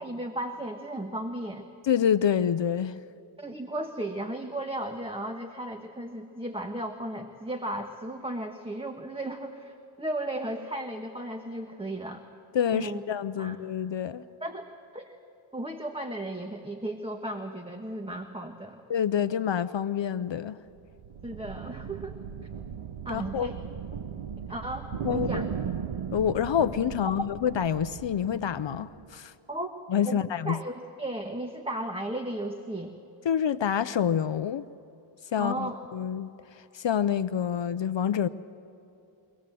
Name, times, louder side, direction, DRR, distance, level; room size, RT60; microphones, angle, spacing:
voice 1, 0.0-1.7 3.4-12.2 12.7-13.0 13.4-13.6 14.4-14.7 14.9-15.1 15.5-18.8 21.2-22.1 23.0-23.5 24.5-25.5 29.5-29.7 30.0-30.2 30.4-32.9 35.4-35.8, right 1 dB, 10° right, 1.3 m, -35 dB
voice 2, 1.8-3.0 12.5-14.2 18.9-20.6 23.1-23.5 25.0-25.4 26.1-29.3 29.9-30.6 33.2-34.6 35.3-36.3 36.7-38.3, left 8 dB, 65° left, 0.6 m, -27 dB
sound 1, 20.7-29.2, right 8 dB, 80° right, 0.8 m, -37 dB
24.5 x 17.5 x 7.6 m
wide cardioid pair, 65°, 48 cm